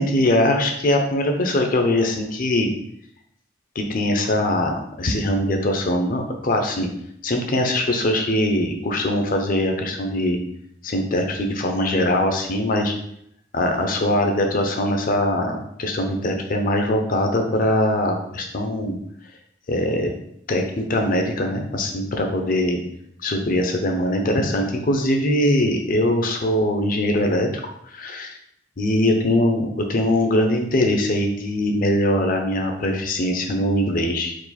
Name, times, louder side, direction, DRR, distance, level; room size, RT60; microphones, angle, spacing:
voice 1, 0.0-2.7 3.7-6.9 7.2-10.4 10.8-12.9 13.5-19.0 19.7-20.1 20.5-22.8 23.2-27.5 27.9-28.4 28.8-34.4, left 1 dB, 45° left, 3 dB, 0.6 m, -22 dB
4.6 x 2.5 x 4.1 m, 0.72 s
head